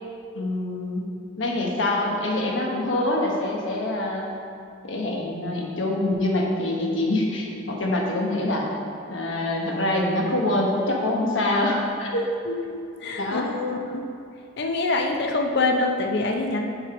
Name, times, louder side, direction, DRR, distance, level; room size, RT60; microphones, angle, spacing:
voice 1, 0.3-1.1 1.4-4.3 4.8-8.6 9.1-12.3 13.2-13.5, left 1 dB, 80° left, -1 dB, 1.2 m, -25 dB
voice 2, 12.5-14.1 14.6-16.7, left 2 dB, 60° left, 3 dB, 0.7 m, -25 dB
6.1 x 5.4 x 5.0 m, 2.5 s
head